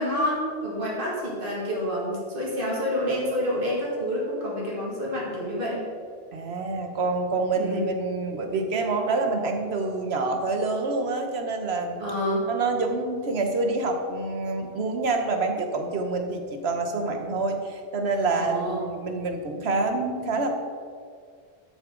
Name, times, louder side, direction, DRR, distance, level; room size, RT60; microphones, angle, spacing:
voice 1, 0.0-5.9 7.5-7.9 12.0-12.5 18.4-18.8, equal, 55° right, -5 dB, 2.2 m, -28 dB
voice 2, 6.3-12.0 12.5-20.5, right 3 dB, 75° right, 4 dB, 1.3 m, -27 dB
12.5 x 6.3 x 3.8 m, 2.1 s
omnidirectional pair, 1.1 m